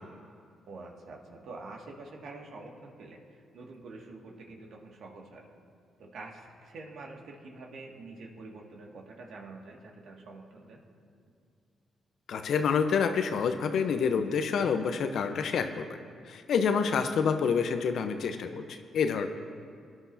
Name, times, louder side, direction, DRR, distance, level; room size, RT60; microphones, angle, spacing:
voice 1, 0.7-5.5 6.0-10.8 16.9-17.1, right 3 dB, 65° right, 0 dB, 2.1 m, -46 dB
voice 2, 12.3-15.8 16.3-19.3, left 6 dB, 65° left, 8 dB, 0.8 m, -28 dB
23.5 x 11.0 x 2.8 m, 2.2 s
hypercardioid pair, 45°, 0 cm